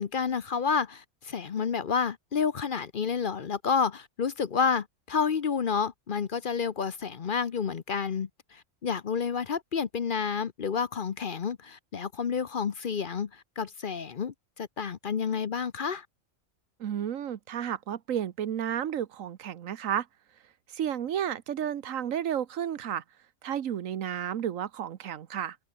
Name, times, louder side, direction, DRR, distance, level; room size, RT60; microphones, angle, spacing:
voice 1, 0.0-16.1, left 6 dB, 45° left, 0.8 m, -30 dB
voice 2, 16.8-20.1 20.7-23.0 23.4-25.6, right 9 dB, 85° right, 1.3 m, -32 dB
omnidirectional pair, 1.3 m